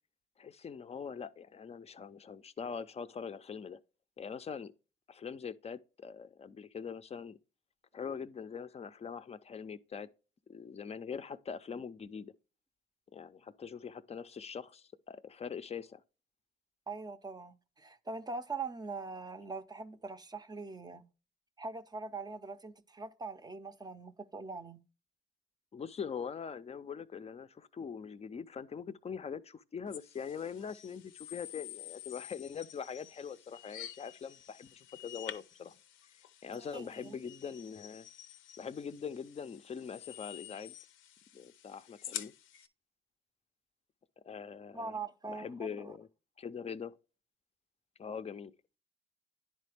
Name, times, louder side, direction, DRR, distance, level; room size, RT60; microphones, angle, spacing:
voice 1, 0.4-3.8 4.2-4.7 5.1-7.4 7.9-10.1 10.5-12.3 13.1-16.0 25.7-35.7 36.4-38.1 38.6-40.7 41.3-42.3 44.2-45.0 45.3-46.1 46.4-46.9 48.0-48.5, left 6 dB, 30° left, 0.4 m, -43 dB
voice 2, 16.9-21.0 21.6-24.8 36.5-37.2 44.7-46.0, right 4 dB, 20° right, 0.5 m, -42 dB
sound 1, 29.9-42.7, left 11 dB, 85° left, 0.6 m, -49 dB
10.5 x 4.1 x 3.3 m
cardioid pair, 90°, 20 cm